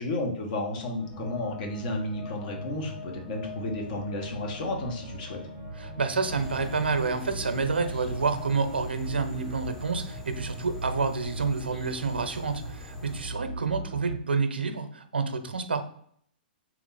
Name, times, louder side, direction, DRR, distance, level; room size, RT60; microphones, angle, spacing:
voice 1, 0.0-5.4, left 2 dB, 50° left, 2 dB, 1.2 m, -32 dB
sound 1, 1.0-14.1, equal, 20° left, 1.5 m, -39 dB
voice 2, 5.8-15.8, right 4 dB, 90° right, 8 dB, 0.6 m, -29 dB
sound 2, 6.3-13.3, left 2 dB, 5° left, 0.6 m, -45 dB
3.5 x 3.0 x 4.0 m, 0.63 s
hypercardioid pair, 125°, 5 cm